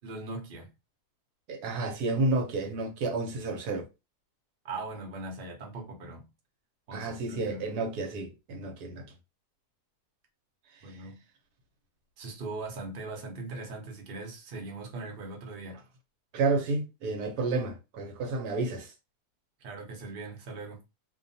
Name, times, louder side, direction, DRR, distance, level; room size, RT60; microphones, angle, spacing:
voice 1, 0.0-0.7 4.6-6.3 6.9-7.7 10.8-11.2 12.2-15.8 19.6-20.8, right 3 dB, 45° right, 0.8 m, -40 dB
voice 2, 1.5-3.9 6.9-9.1 10.8-11.0 16.3-18.9, right 3 dB, 80° right, 1.2 m, -31 dB
2.7 x 2.2 x 2.6 m
omnidirectional pair, 1.7 m